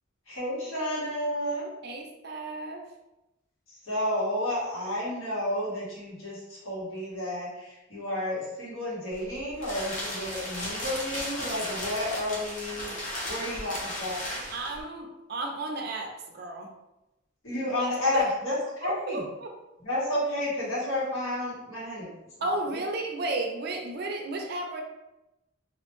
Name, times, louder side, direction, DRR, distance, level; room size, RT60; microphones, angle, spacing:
voice 1, 0.3-1.7 3.7-12.9 13.3-14.3 17.4-19.2 19.8-22.2 22.7-22.8, left 1 dB, 85° left, -8 dB, 1.2 m, -31 dB
voice 2, 1.8-2.8 10.5-10.7 13.4-13.6 14.5-16.7 17.8-18.2 18.8-19.5 22.4-24.8, right 2 dB, 50° right, 2 dB, 0.4 m, -33 dB
sound 1, 9.1-14.8, left 1 dB, 40° left, 0.6 m, -35 dB
2.4 x 2.1 x 3.0 m, 0.94 s
head